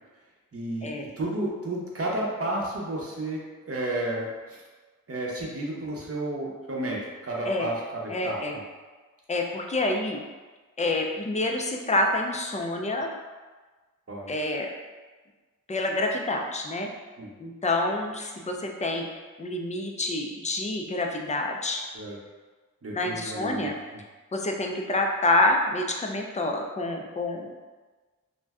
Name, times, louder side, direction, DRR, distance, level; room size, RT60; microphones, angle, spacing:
voice 1, 0.5-4.6 5.1-8.6 14.1-14.3 17.2-17.3 21.9-22.2 22.8-23.7, right 1 dB, 45° right, -3 dB, 0.7 m, -32 dB
voice 2, 8.1-8.6 9.3-10.2 10.8-13.1 14.3-14.7 15.7-16.9 17.4-19.1 19.4-21.8 22.9-23.7 24.3-27.5, left 2 dB, 20° left, 2 dB, 0.3 m, -27 dB
2.6 x 2.1 x 3.4 m, 1.3 s
wide cardioid pair, 85°, 34 cm